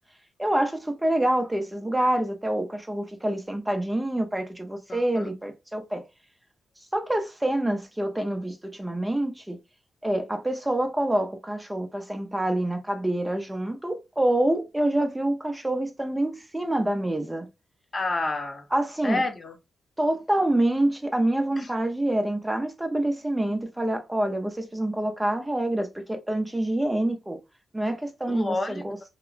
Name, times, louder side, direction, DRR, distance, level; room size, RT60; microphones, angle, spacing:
voice 1, 0.4-6.0 6.9-9.6 10.0-17.5 18.7-19.2 20.0-27.4 27.7-29.0, right 1 dB, 15° right, 0.6 m, -26 dB
voice 2, 4.9-5.3 17.9-18.7 19.0-19.6 21.6-21.7 28.3-28.8, left 2 dB, 40° left, 0.7 m, -29 dB
2.8 x 2.1 x 2.4 m
cardioid pair, 60°, 0 cm